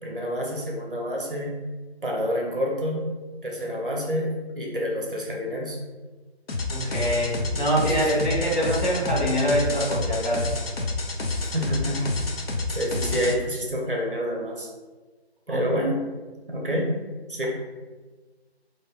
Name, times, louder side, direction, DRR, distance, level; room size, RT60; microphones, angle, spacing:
voice 1, 0.0-1.5 2.0-3.1 3.4-5.8 7.8-8.3 11.4-12.1 12.7-14.7 15.5-16.0 16.5-17.0 17.3-17.5, equal, 55° right, -1 dB, 0.7 m, -28 dB
sound 1, 6.5-13.3, left 3 dB, 65° left, 0.5 m, -29 dB
voice 2, 6.7-10.5 11.9-12.0 15.5-15.6, equal, 45° left, -7 dB, 1.1 m, -24 dB
2.6 x 2.4 x 3.5 m, 1.3 s
figure-of-eight pair, 160°, 33 cm